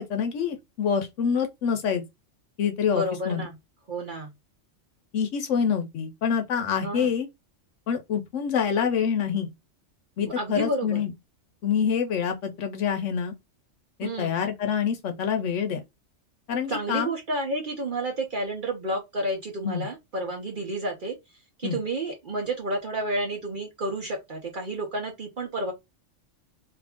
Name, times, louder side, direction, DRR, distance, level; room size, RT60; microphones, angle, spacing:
voice 1, 0.0-2.0 2.6-3.5 5.1-7.3 7.9-9.5 10.2-11.1 11.6-13.3 14.0-15.8 16.5-17.1 19.6-19.9 21.6-21.8, left 7 dB, 80° left, 1.0 m, -26 dB
voice 2, 2.9-3.5 3.9-4.3 6.8-7.1 10.4-11.0 14.0-14.4 16.7-21.1 21.6-25.7, right 1 dB, 50° right, 0.8 m, -30 dB
2.7 x 2.5 x 3.4 m
omnidirectional pair, 1.3 m